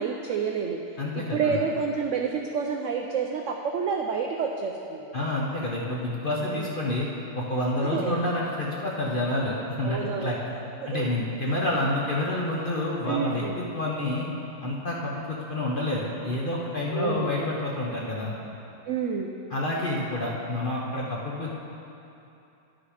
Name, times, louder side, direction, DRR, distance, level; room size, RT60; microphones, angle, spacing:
voice 1, 0.0-0.8 1.1-5.1 6.4-6.7 7.8-8.2 9.8-10.3 10.8-11.1 11.4-11.5 13.0-13.5 16.9-17.5 18.9-19.3, right 6 dB, 85° right, 2 dB, 0.6 m, -29 dB
voice 2, 1.0-1.6 5.1-7.1 7.3-10.5 10.9-14.3 14.6-18.4 19.5-21.5, left 1 dB, 45° left, -4 dB, 0.7 m, -28 dB
11.0 x 6.2 x 4.9 m, 2.9 s
omnidirectional pair, 1.9 m